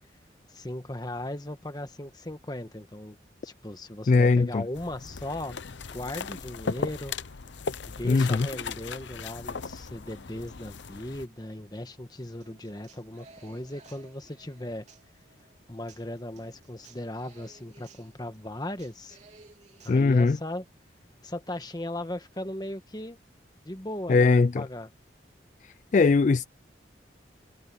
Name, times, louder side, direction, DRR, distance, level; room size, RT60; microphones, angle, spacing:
voice 1, 0.5-3.2 3.4-5.6 5.9-7.1 7.9-14.8 15.7-19.2 19.8-20.6 21.2-23.2 23.6-24.9, left 1 dB, 20° left, 1.4 m, -37 dB
voice 2, 4.1-4.6 8.0-8.5 19.9-20.4 24.1-24.6 25.6-26.5, left 4 dB, 40° left, 0.3 m, -21 dB
sound 1, 4.8-11.3, left 5 dB, 75° left, 0.7 m, -37 dB
Human voice / Acoustic guitar, 12.4-20.4, right 4 dB, 40° right, 3.6 m, -57 dB
head